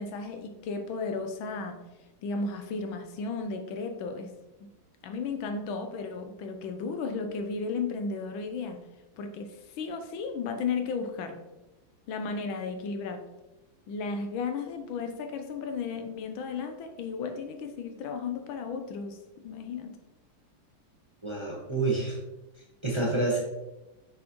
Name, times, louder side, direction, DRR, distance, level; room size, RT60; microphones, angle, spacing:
voice 1, 0.0-1.8 2.2-4.3 5.0-8.8 9.2-11.4 12.1-13.2 13.9-19.2 19.4-20.0, left 4 dB, 85° left, 6 dB, 1.5 m, -34 dB
voice 2, 21.2-22.2 22.8-23.4, right 2 dB, 20° right, -4 dB, 1.0 m, -28 dB
6.3 x 6.0 x 3.1 m, 1.0 s
omnidirectional pair, 2.1 m